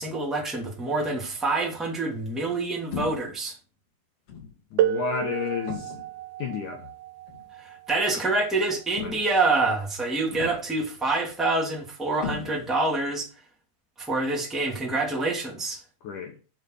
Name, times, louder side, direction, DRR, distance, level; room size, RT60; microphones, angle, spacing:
voice 1, 0.0-3.5 7.6-13.3 14.0-15.8, right 2 dB, ahead, 1.4 m, -26 dB
sound 1, 2.9-3.4 4.3-4.6 5.7-6.2 7.3-7.5 9.0-9.5 10.3-10.8 12.2-12.9, left 5 dB, 50° left, 2.0 m, -37 dB
voice 2, 4.7-5.9 6.4-6.9 9.0-9.2 16.0-16.4, left 6 dB, 70° left, 1.9 m, -31 dB
sound 2, 4.8-10.2 11.3-11.4 12.2-12.4, right 11 dB, 75° right, 1.8 m, -32 dB
6.8 x 6.6 x 6.4 m
omnidirectional pair, 5.0 m